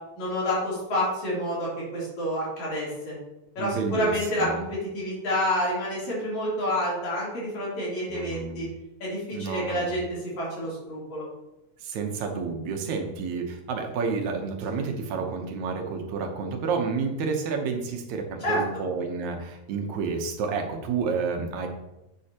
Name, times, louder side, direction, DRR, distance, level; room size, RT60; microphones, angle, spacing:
voice 1, 0.2-3.2 3.6-8.7 9.0-10.0 10.4-11.3 18.4-18.6, equal, 65° left, -6 dB, 4.6 m, -28 dB
voice 2, 3.6-4.1 4.4-4.6 8.1-8.7 9.3-10.0 11.8-21.7, right 5 dB, 75° right, 3 dB, 2.3 m, -30 dB
10.0 x 7.4 x 2.9 m, 0.93 s
omnidirectional pair, 3.5 m